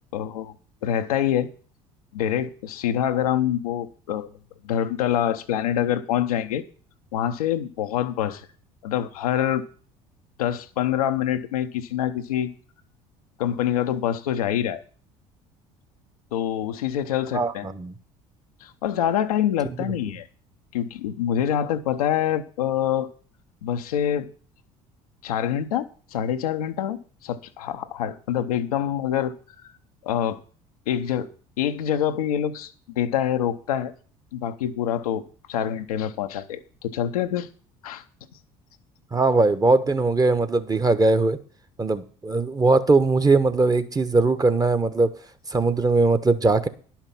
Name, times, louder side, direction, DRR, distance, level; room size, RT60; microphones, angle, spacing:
voice 1, 0.1-0.5 0.8-1.5 2.1-4.3 4.6-6.6 7.1-8.5 8.8-9.6 10.4-12.5 13.4-14.8 16.3-17.7 18.6-20.3 20.7-23.1 23.6-24.3 25.2-29.3 29.6-29.7 30.0-30.4 30.9-31.3 31.6-33.9 34.3-37.5 37.8-38.0, left 10 dB, 80° left, 0.8 m, -25 dB
voice 2, 17.3-17.9 39.1-41.4 41.8-45.1 45.5-46.7, right 3 dB, 20° right, 1.1 m, -20 dB
10.5 x 5.8 x 7.1 m
hypercardioid pair, 60°, 19 cm